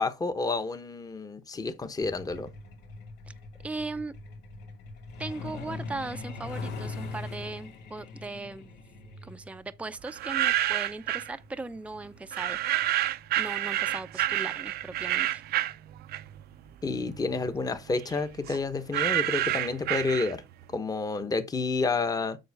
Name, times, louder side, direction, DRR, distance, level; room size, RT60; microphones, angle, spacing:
voice 1, 0.0-2.5 16.8-20.4 20.7-22.4, left 3 dB, 20° left, 1.1 m, -30 dB
Truck, 2.0-14.3 15.5-15.7 16.1-16.3 16.6-16.9 17.3-17.4 17.8-17.9, left 3 dB, 90° left, 2.6 m, -42 dB
voice 2, 3.6-4.1 5.2-8.7 9.2-15.4, right 3 dB, 5° right, 0.6 m, -38 dB
sound 1, 10.1-11.3 12.3-16.5 16.9-20.6, right 13 dB, 70° right, 0.6 m, -29 dB
7.9 x 6.2 x 3.5 m
cardioid pair, 110°, 17 cm